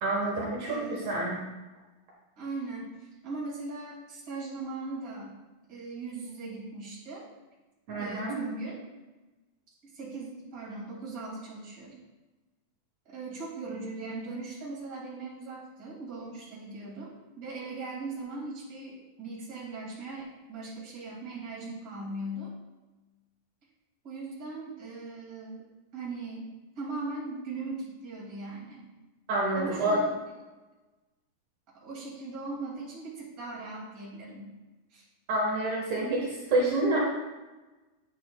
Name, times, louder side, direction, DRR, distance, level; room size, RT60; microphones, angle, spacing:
voice 1, 0.0-1.4 7.9-8.4 29.3-30.0 35.3-37.0, right 2 dB, 65° right, -4 dB, 2.5 m, -28 dB
voice 2, 0.6-1.1 2.4-5.4 5.7-7.3 8.0-8.8 9.8-12.0 13.1-22.5 24.0-26.5 26.8-28.8 29.5-30.2 31.7-34.5 34.9-35.0, right 3 dB, 30° right, -5 dB, 2.4 m, -39 dB
9.0 x 8.6 x 2.3 m, 1.1 s
omnidirectional pair, 3.7 m